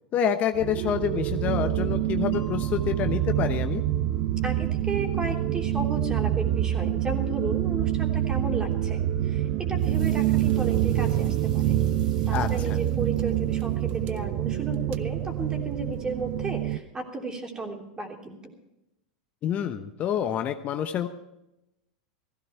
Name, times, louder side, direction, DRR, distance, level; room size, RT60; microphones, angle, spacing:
voice 1, 0.1-3.8 12.3-12.5 19.4-21.1, left 9 dB, 40° left, 8 dB, 0.9 m, -27 dB
sound 1, 0.5-16.8, right 12 dB, 50° right, 0.7 m, -26 dB
Mallet percussion, 2.3-7.1, left 2 dB, 60° left, 2.7 m, -50 dB
voice 2, 4.4-11.8 12.3-18.5, right 2 dB, 20° right, 2 dB, 3.2 m, -34 dB
sound 2, 9.8-14.2, right 3 dB, 85° right, 5.4 m, -54 dB
16.0 x 15.5 x 4.5 m, 0.90 s
hypercardioid pair, 100°, 4 cm